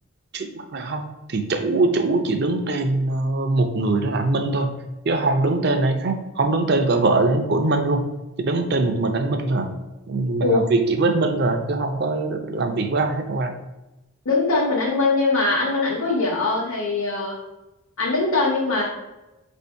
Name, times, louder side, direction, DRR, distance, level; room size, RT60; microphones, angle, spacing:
voice 1, 0.3-1.0 1.3-4.7 5.1-8.1 8.4-9.7 10.1-13.5, right 2 dB, 50° right, 6 dB, 0.4 m, -22 dB
voice 2, 14.2-17.4 18.0-18.8, left 3 dB, 75° left, -4 dB, 0.8 m, -21 dB
3.5 x 2.6 x 4.4 m, 1.0 s
head